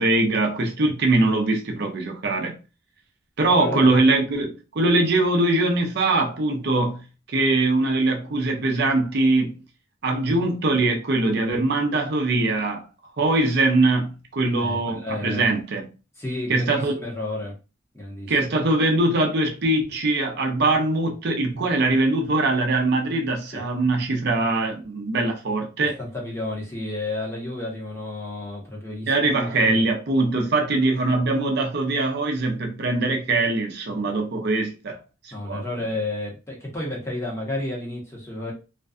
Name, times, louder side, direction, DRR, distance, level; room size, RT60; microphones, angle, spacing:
voice 1, 0.0-2.6 3.4-9.5 10.0-12.9 13.2-15.9 16.5-17.0 18.3-26.0 29.1-35.6, right 2 dB, 55° right, 0.5 m, -22 dB
voice 2, 3.5-4.0 14.6-15.5 16.2-17.5 17.9-18.3 23.5-23.6 26.0-29.8 35.3-38.5, left 2 dB, 15° left, 0.8 m, -31 dB
2.5 x 2.2 x 2.3 m
head